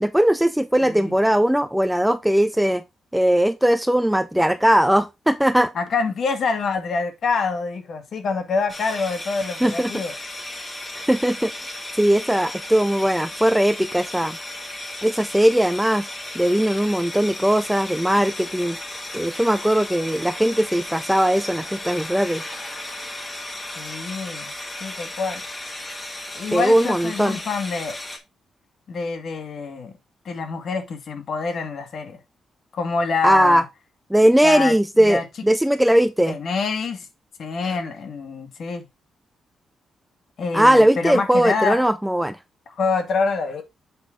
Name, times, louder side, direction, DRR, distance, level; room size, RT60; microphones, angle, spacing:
voice 1, 0.0-2.8 3.1-5.7 9.6-9.9 10.9-14.4 15.0-16.1 16.3-18.8 19.1-22.4 26.5-27.4 33.2-33.6 34.1-36.4 40.5-42.4, right 1 dB, 5° right, 0.4 m, -19 dB
voice 2, 0.8-1.1 5.8-10.1 23.8-24.5 24.8-25.4 26.3-28.0 28.9-29.9 30.3-32.2 32.7-33.6 34.4-35.2 36.3-37.1 37.4-38.9 40.4-41.8 42.8-43.6, left 4 dB, 50° left, 1.8 m, -26 dB
sound 1, 8.7-28.2, left 1 dB, 15° left, 1.7 m, -35 dB
7.8 x 5.2 x 3.5 m
wide cardioid pair, 150°, 0 cm